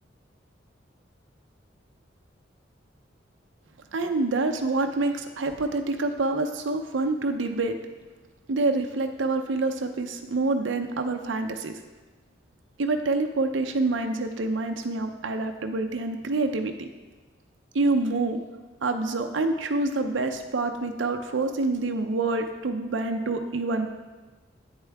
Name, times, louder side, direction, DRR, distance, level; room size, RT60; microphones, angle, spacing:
voice 1, 3.9-7.8 8.5-11.7 12.8-16.9 17.7-18.4 18.8-23.9, right 3 dB, 80° right, 5 dB, 0.6 m, -27 dB
8.9 x 8.1 x 3.4 m, 1.2 s
head